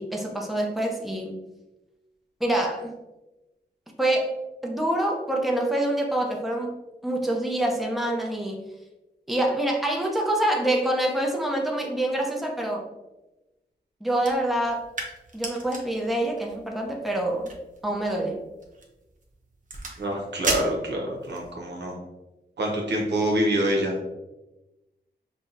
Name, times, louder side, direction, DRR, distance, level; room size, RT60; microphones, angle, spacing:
voice 1, 0.0-1.4 2.4-3.0 4.0-4.3 4.6-6.8 7.0-8.6 9.3-12.9 14.0-14.9 15.3-17.5 17.8-18.4, right 1 dB, ahead, 0 dB, 0.7 m, -26 dB
sound 1, 14.2-21.5, right 2 dB, 50° right, 0.8 m, -37 dB
voice 2, 20.0-21.9 22.6-24.1, right 1 dB, 90° right, 0 dB, 0.9 m, -26 dB
5.5 x 2.3 x 2.6 m, 1.0 s
wide cardioid pair, 80°, 17 cm